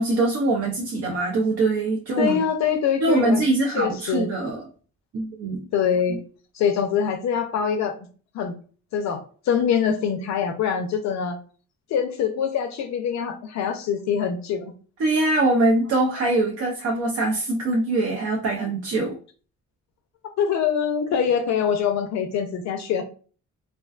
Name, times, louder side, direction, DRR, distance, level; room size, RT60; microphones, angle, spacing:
voice 1, 0.0-2.4 3.0-4.6 5.1-5.7 6.1-6.2 15.0-19.1, right 2 dB, 50° right, -1 dB, 0.5 m, -23 dB
voice 2, 2.2-3.4 3.7-4.3 5.7-6.2 6.5-7.9 8.3-8.6 8.9-11.4 11.9-14.7 20.4-23.0, left 7 dB, 65° left, 6 dB, 0.5 m, -24 dB
2.4 x 2.2 x 2.3 m, 0.40 s
cardioid pair, 90°, 30 cm